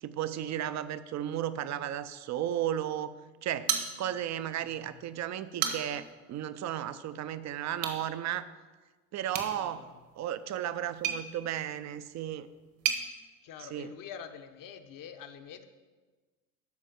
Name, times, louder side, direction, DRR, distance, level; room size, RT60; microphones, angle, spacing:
voice 1, 0.0-3.1 3.4-3.7 4.0-8.4 9.1-9.9 10.2-12.5 13.6-13.9, right 11 dB, 40° right, 13 dB, 0.6 m, -34 dB
sound 1, 3.7-4.4 4.8-4.9 5.4-6.1 7.7-8.0 9.3-13.0, right 8 dB, 65° right, 1.6 m, -35 dB
voice 2, 4.6-5.0 9.5-10.0 13.4-15.7, left 8 dB, 50° left, 7 dB, 1.0 m, -46 dB
12.0 x 4.5 x 5.9 m, 1.3 s
hypercardioid pair, 75°, 42 cm